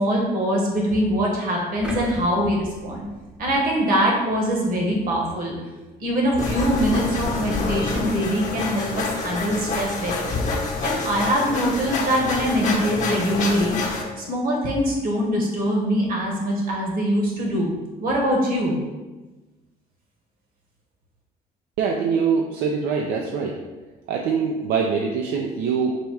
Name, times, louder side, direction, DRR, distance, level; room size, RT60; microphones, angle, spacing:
voice 1, 0.0-3.0 3.4-5.5 6.0-10.3 10.8-17.7 18.0-18.8, equal, 55° right, -1 dB, 1.2 m, -23 dB
sound 1, 1.8-4.0 4.5-4.6, right 1 dB, 5° right, 0.6 m, -38 dB
sound 2, 6.4-14.0, left 3 dB, 45° left, 0.8 m, -27 dB
voice 2, 21.8-23.6 24.1-26.0, right 5 dB, 80° right, 0 dB, 0.5 m, -23 dB
4.1 x 2.3 x 4.6 m, 1.2 s
cardioid pair, 110°, 17 cm